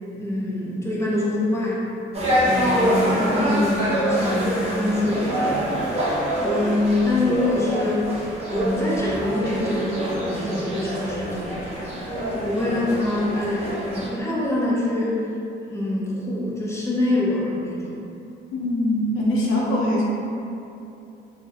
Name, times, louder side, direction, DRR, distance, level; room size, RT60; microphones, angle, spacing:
voice 1, 0.1-1.8 2.4-8.1 8.5-11.8 12.3-15.2 15.7-18.0, left 1 dB, 15° left, -6 dB, 0.6 m, -25 dB
sound 1, 2.1-14.1, right 1 dB, 30° right, 0.7 m, -25 dB
voice 2, 18.5-20.0, left 1 dB, 85° left, -4 dB, 0.6 m, -22 dB
3.2 x 2.1 x 2.3 m, 2.7 s
cardioid pair, 90°, 20 cm